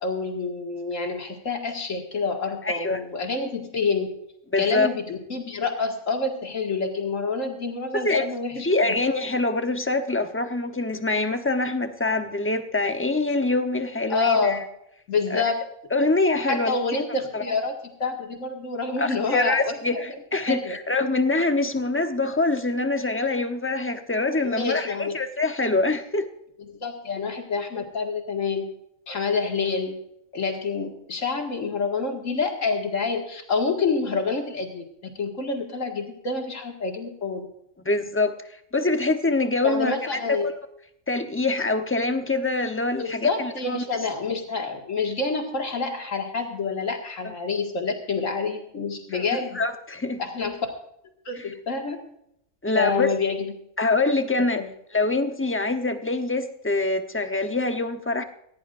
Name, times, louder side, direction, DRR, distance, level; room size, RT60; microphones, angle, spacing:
voice 1, 0.0-4.1 4.6-8.7 14.1-14.6 15.1-15.6 16.4-20.0 20.5-20.8 24.4-25.2 26.7-28.6 29.1-29.9 30.3-37.5 39.6-40.5 43.0-49.6 50.2-50.6 51.3-52.0 52.7-53.5 54.5-54.7, left 4 dB, 70° left, 2 dB, 2.4 m, -27 dB
voice 2, 2.6-3.0 4.5-4.9 8.0-8.2 8.6-14.6 15.3-15.4 15.9-16.8 17.3-17.4 19.0-26.3 37.8-38.3 38.7-40.5 41.1-43.8 49.1-50.2 51.4-51.5 52.6-53.1 53.8-54.6 54.9-58.2, left 2 dB, 10° left, 7 dB, 0.8 m, -24 dB
18.5 x 16.5 x 2.6 m, 0.75 s
omnidirectional pair, 1.4 m